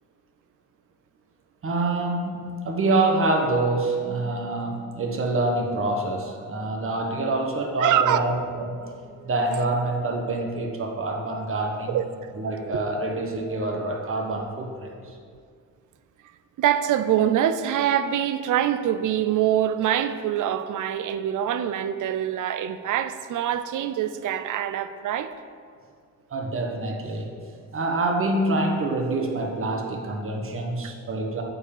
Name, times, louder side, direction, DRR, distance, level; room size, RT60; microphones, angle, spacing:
voice 1, 1.6-8.9 9.2-12.0 12.4-15.1 26.3-27.3 27.7-31.4, right 2 dB, 40° right, 1 dB, 1.4 m, -26 dB
voice 2, 7.8-8.3 8.8-9.3 11.9-12.3 16.6-25.3 30.8-30.9, right 10 dB, 65° right, 11 dB, 0.6 m, -24 dB
8.3 x 4.8 x 7.2 m, 2.1 s
cardioid pair, 95°, 33 cm